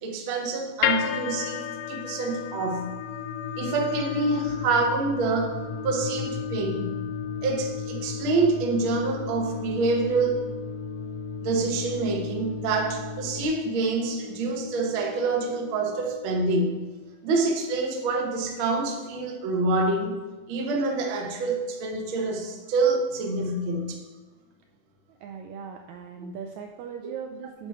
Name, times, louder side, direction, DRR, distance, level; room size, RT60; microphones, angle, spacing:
voice 1, 0.0-2.9 3.6-7.0 7.4-10.4 11.4-16.7 17.2-20.2 20.5-24.0 26.2-26.3, right 3 dB, 60° right, 2 dB, 1.4 m, -26 dB
sound 1, 0.8-17.0, left 9 dB, 85° left, 1.6 m, -35 dB
sound 2, 4.4-13.4, left 2 dB, 50° left, 1.6 m, -38 dB
voice 2, 25.2-27.7, right 6 dB, 80° right, 5 dB, 1.7 m, -39 dB
9.9 x 5.7 x 4.5 m, 1.2 s
omnidirectional pair, 3.7 m